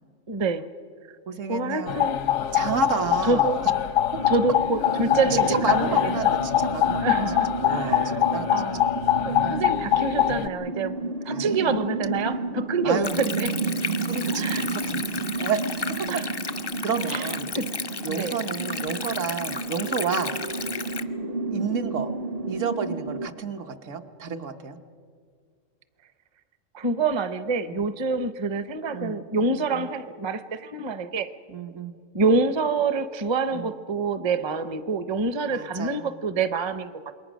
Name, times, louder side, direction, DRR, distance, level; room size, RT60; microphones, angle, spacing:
voice 1, 0.3-0.6 1.5-2.2 3.2-3.6 4.3-6.3 7.0-8.2 8.5-8.8 9.3-13.5 14.3-14.6 16.1-16.3 17.1-17.7 18.0-18.4 26.7-31.3 32.1-36.9, right 3 dB, 30° right, 12 dB, 0.6 m, -27 dB
voice 2, 1.3-2.1 2.5-3.7 5.3-8.9 9.4-9.7 11.3-11.8 12.8-13.2 14.0-15.1 15.4-16.2 16.8-17.5 18.0-20.4 21.5-22.1 22.5-24.8 27.7-27.8 28.9-29.9 31.5-31.9 33.5-33.7 35.5-36.1, right 6 dB, 70° right, 6 dB, 1.4 m, -31 dB
sound 1, 1.9-10.5, left 11 dB, 85° left, 1.2 m, -24 dB
sound 2, 4.1-23.3, right 2 dB, 50° right, 1.1 m, -31 dB
Stream, 13.0-21.0, left 4 dB, 35° left, 0.4 m, -34 dB
28.0 x 22.0 x 6.2 m, 2.1 s
omnidirectional pair, 1.4 m